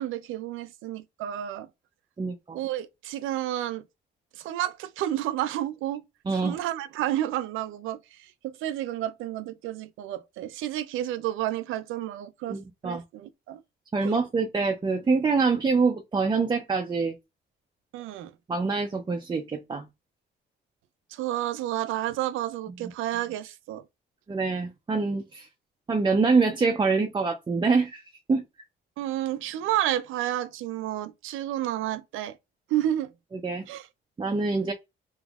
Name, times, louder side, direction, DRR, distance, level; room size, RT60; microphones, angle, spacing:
voice 1, 0.0-1.7 2.5-3.8 4.3-6.0 6.3-13.6 14.0-14.2 17.9-18.3 21.1-23.8 29.0-32.4 32.7-33.1 33.7-33.9, right 13 dB, 85° right, 0.4 m, -31 dB
voice 2, 2.2-2.6 6.3-6.6 12.5-13.0 13.9-17.1 18.5-19.8 24.3-25.5 25.9-28.0 28.3-28.4 33.4-33.6 34.2-34.7, right 4 dB, 25° right, 0.5 m, -25 dB
3.4 x 3.0 x 2.3 m
cardioid pair, 90°, 20 cm